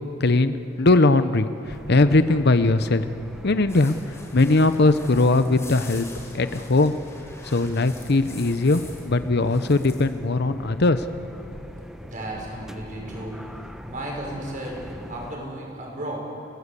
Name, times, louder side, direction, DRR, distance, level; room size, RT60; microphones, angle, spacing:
voice 1, 0.2-3.0 3.4-6.1 6.3-6.9 7.4-11.1, left 2 dB, 50° left, 11 dB, 0.8 m, -20 dB
sound 1, 1.6-15.4, equal, ahead, 0.9 m, -41 dB
sound 2, 3.7-9.1 9.4-10.1, left 3 dB, 15° left, 4.4 m, -45 dB
voice 2, 12.0-13.5 13.8-16.2, right 1 dB, 40° right, -1 dB, 6.2 m, -34 dB
30.0 x 19.0 x 8.3 m, 2.9 s
head